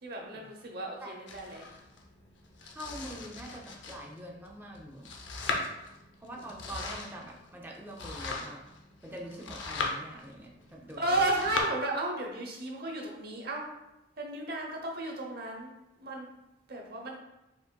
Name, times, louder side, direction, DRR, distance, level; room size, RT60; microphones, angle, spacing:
voice 1, 0.0-1.6 11.0-13.7 14.2-15.7 16.0-16.3 16.7-17.2, right 2 dB, 55° right, 1 dB, 0.8 m, -33 dB
Domestic sounds home sounds, 1.3-11.6, left 4 dB, 75° left, 0.6 m, -39 dB
voice 2, 2.6-5.1 5.6-5.7 6.2-8.6 9.0-11.3, right 1 dB, 10° right, -1 dB, 0.6 m, -44 dB
4.8 x 3.9 x 2.2 m, 0.93 s
head